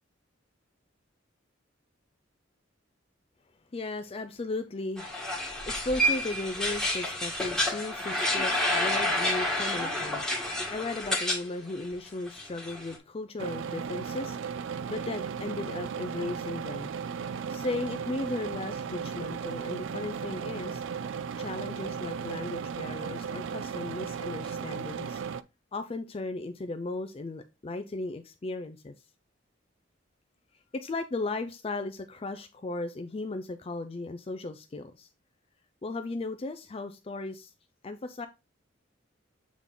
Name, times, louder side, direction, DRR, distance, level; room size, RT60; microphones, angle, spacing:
voice 1, 3.7-5.1 5.7-10.2 10.7-14.6 14.9-16.9 17.5-20.8 21.4-25.2 25.7-28.9 30.7-35.1 35.8-37.5 37.8-38.3, left 2 dB, 30° left, 0.4 m, -36 dB
sound 1, 5.0-11.4 11.7-13.0, left 1 dB, 5° left, 2.0 m, -29 dB
sound 2, 13.4-25.4, right 6 dB, 75° right, 0.4 m, -35 dB
7.3 x 3.8 x 3.6 m
head